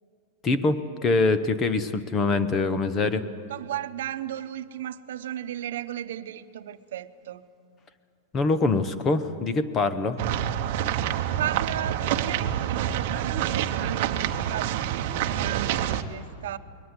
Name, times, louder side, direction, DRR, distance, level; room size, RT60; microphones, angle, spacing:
voice 1, 0.4-3.2 8.3-10.2, left 3 dB, 15° left, 11 dB, 0.8 m, -24 dB
voice 2, 3.5-7.4 11.4-16.6, right 11 dB, 75° right, 11 dB, 0.8 m, -35 dB
sound 1, 10.2-16.0, right 10 dB, 45° right, 1.0 m, -27 dB
21.0 x 18.5 x 9.7 m, 2.3 s
supercardioid pair, 175°, 0 cm